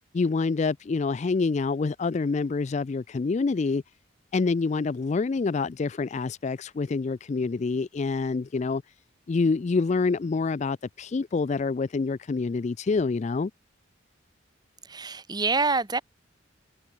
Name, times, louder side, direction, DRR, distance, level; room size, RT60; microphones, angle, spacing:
voice 1, 0.1-3.8 4.3-8.8 9.3-13.5, left 4 dB, 35° left, 0.3 m, -26 dB
voice 2, 14.9-16.0, right 4 dB, 20° right, 1.2 m, -26 dB
head